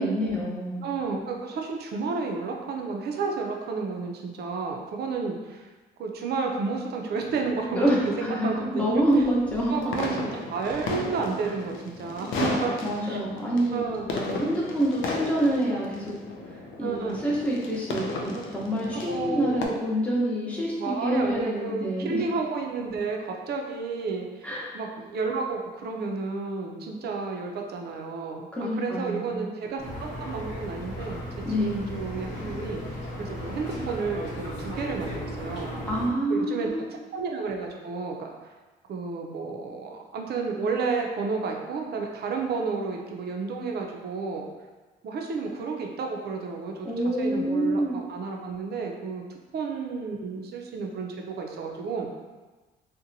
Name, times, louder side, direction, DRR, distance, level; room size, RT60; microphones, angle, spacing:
voice 1, 0.0-0.8 7.7-9.8 12.8-13.8 14.2-16.2 16.5-22.2 24.4-24.7 28.5-29.5 31.4-31.8 35.9-36.9 46.8-48.0, right 1 dB, 5° left, -6 dB, 0.7 m, -27 dB
voice 2, 0.8-5.7 6.0-9.0 9.7-12.7 13.0-13.2 13.7-14.1 15.7-15.8 16.8-17.2 18.3-18.5 18.9-19.8 20.7-31.2 31.6-35.7 36.3-36.7 37.1-38.3 38.9-44.5 45.0-49.2 49.5-52.1, right 4 dB, 55° right, 1 dB, 0.5 m, -31 dB
sound 1, 7.2-19.7, left 2 dB, 80° left, 0.4 m, -35 dB
sound 2, 29.8-36.1, equal, 65° left, 1.0 m, -36 dB
2.7 x 2.1 x 2.6 m, 1.2 s
cardioid pair, 90°, 20 cm